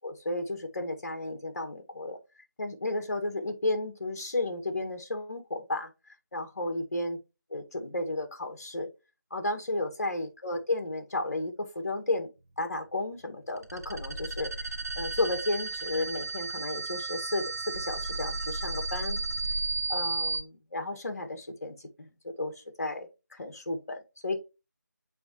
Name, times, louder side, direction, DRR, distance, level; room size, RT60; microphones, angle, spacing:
voice 1, 0.0-2.2 2.6-7.2 7.5-8.9 9.3-12.3 12.6-14.7 14.9-19.5 19.9-24.4, left 2 dB, 50° left, 1.8 m, -33 dB
sound 1, 13.6-20.4, right 3 dB, 55° right, 1.1 m, -33 dB
6.9 x 4.7 x 3.0 m
figure-of-eight pair, 170°, 10 cm